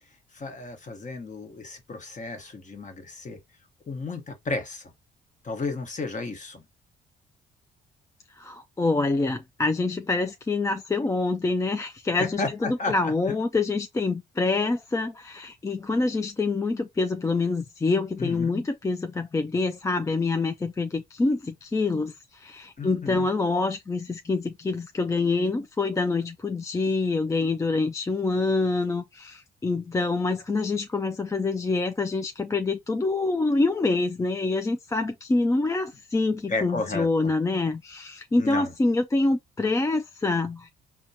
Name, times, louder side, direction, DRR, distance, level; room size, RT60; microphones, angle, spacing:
voice 1, 0.3-3.4 3.9-4.9 5.4-6.6 12.2-13.1 18.2-18.6 22.8-23.3 36.5-37.3 38.4-38.7, left 3 dB, 40° left, 1.1 m, -33 dB
voice 2, 8.4-40.7, left 3 dB, 15° left, 0.4 m, -26 dB
4.3 x 2.3 x 2.7 m
cardioid pair, 90°, 20 cm